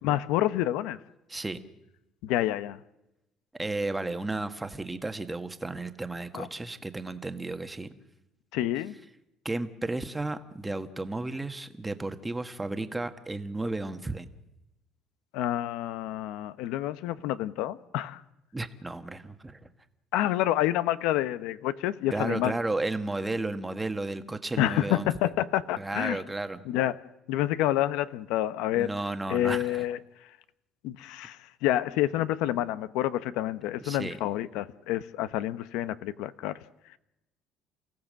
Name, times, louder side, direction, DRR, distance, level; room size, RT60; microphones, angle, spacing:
voice 1, 0.0-1.0 2.2-2.8 6.3-6.5 8.5-9.0 15.3-18.2 20.1-22.5 24.6-26.2 26.6-27.0 27.3-28.9 29.3-30.0 30.8-36.6, left 13 dB, 85° left, 14 dB, 0.9 m, -28 dB
voice 2, 3.5-7.9 9.4-14.3 18.5-19.7 22.1-25.1 25.8-26.6 28.7-29.8 33.8-34.2, right 2 dB, 10° right, 8 dB, 1.4 m, -33 dB
29.5 x 16.5 x 7.5 m, 0.93 s
cardioid pair, 135°, 0 cm